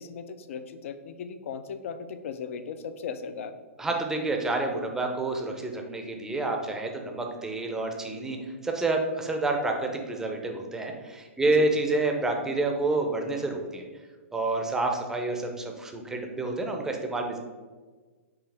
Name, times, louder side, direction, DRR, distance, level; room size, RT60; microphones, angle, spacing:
voice 1, 0.0-3.6 11.4-11.7, left 6 dB, 65° left, 10 dB, 0.4 m, -37 dB
voice 2, 3.8-8.4 8.6-13.8 14.3-17.4, right 2 dB, 5° right, 2 dB, 0.5 m, -28 dB
4.8 x 3.3 x 3.3 m, 1.4 s
hypercardioid pair, 135°, 8 cm